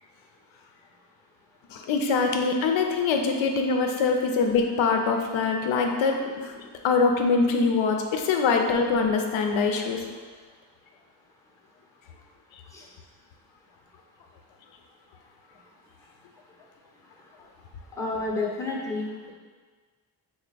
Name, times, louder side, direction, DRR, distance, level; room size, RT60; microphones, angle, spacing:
voice 1, 1.7-10.0, left 4 dB, 85° left, 3 dB, 0.5 m, -24 dB
voice 2, 18.0-19.3, left 3 dB, 5° left, -2 dB, 0.6 m, -30 dB
3.4 x 2.1 x 3.8 m, 1.5 s
cardioid pair, 70°, 45 cm